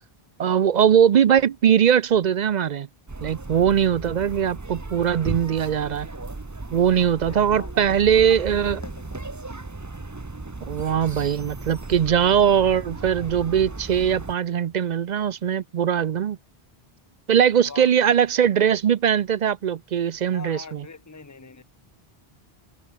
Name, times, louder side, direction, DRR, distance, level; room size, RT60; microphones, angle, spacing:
voice 1, 0.4-2.9 3.2-6.1 6.7-8.8 10.7-16.4 17.3-20.8, right 8 dB, 55° right, 0.6 m, -20 dB
sound 1, 3.1-14.3, right 2 dB, 20° right, 0.9 m, -36 dB
voice 2, 7.2-9.3 17.6-17.9 20.3-21.6, left 4 dB, 15° left, 1.1 m, -42 dB
omnidirectional pair, 1.0 m